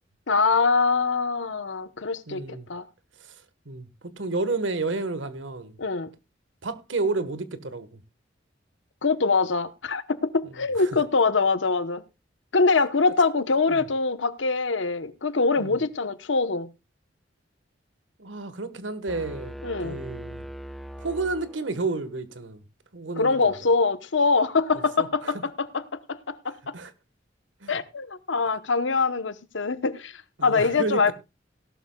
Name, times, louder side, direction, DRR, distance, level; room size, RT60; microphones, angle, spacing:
voice 1, 0.3-2.9 5.8-6.1 9.0-12.0 12.5-16.7 19.6-20.0 23.2-26.7 27.7-31.1, left 4 dB, 75° left, 1.0 m, -24 dB
voice 2, 2.3-2.7 3.2-3.3 3.6-3.9 4.2-5.8 6.6-8.0 10.8-10.9 13.7-13.8 15.6-15.8 18.2-19.5 19.8-20.4 21.0-22.6 22.9-23.6 25.0-25.3 26.7-26.9 27.6-27.7 30.4-31.1, right 3 dB, 80° right, 1.4 m, -31 dB
sound 1, 19.1-22.0, equal, ahead, 0.5 m, -40 dB
17.5 x 12.0 x 2.3 m
head